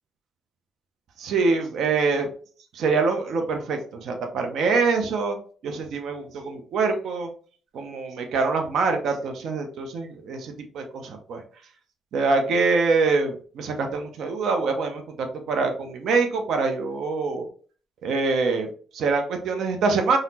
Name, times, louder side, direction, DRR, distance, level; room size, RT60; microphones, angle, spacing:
voice 1, 1.2-2.3 2.7-5.4 5.6-7.3 7.7-11.4 12.1-17.4 18.0-20.2, right 4 dB, 75° right, 5 dB, 0.6 m, -25 dB
3.9 x 2.0 x 2.7 m, 0.43 s
cardioid pair, 90°, 0 cm